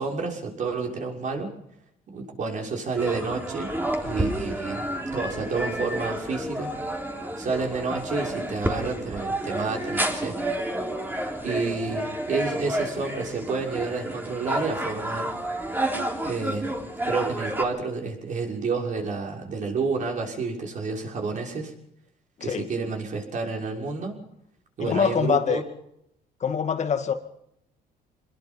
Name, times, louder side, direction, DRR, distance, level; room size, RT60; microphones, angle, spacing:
voice 1, 0.0-1.5 2.1-3.7 4.0-4.9 5.1-6.7 7.4-10.4 11.4-15.3 16.2-16.7 17.1-21.7 22.4-24.2 24.8-25.6, right 4 dB, 50° right, 1 dB, 6.3 m, -29 dB
sound 1, 3.0-17.6, right 1 dB, 10° right, 3.6 m, -30 dB
voice 2, 24.8-25.6 26.4-27.1, left 7 dB, 45° left, 7 dB, 2.2 m, -24 dB
25.0 x 21.0 x 5.5 m, 0.76 s
cardioid pair, 110°, 17 cm